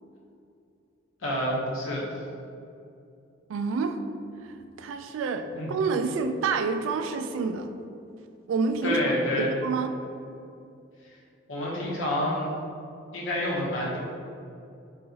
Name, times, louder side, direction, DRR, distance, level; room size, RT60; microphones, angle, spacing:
voice 1, 1.2-2.1 5.5-5.7 8.8-9.5 11.5-12.5 13.1-14.0, left 1 dB, 85° left, -4 dB, 1.0 m, -28 dB
voice 2, 3.5-4.0 4.8-7.7 8.5-9.1 9.4-9.9, right 4 dB, 80° right, 8 dB, 0.3 m, -28 dB
3.9 x 3.8 x 2.9 m, 2.6 s
head